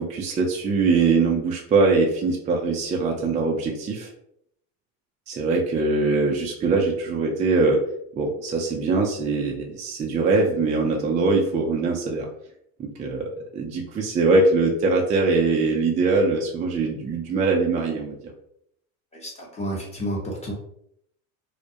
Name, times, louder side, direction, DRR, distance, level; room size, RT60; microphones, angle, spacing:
voice 1, 0.0-4.1 5.3-7.8 8.1-12.3 12.8-18.2, right 3 dB, 20° right, 0 dB, 0.3 m, -22 dB
voice 2, 19.1-20.5, equal, 15° left, -2 dB, 0.8 m, -31 dB
2.2 x 2.1 x 2.7 m, 0.71 s
supercardioid pair, 95°, 39 cm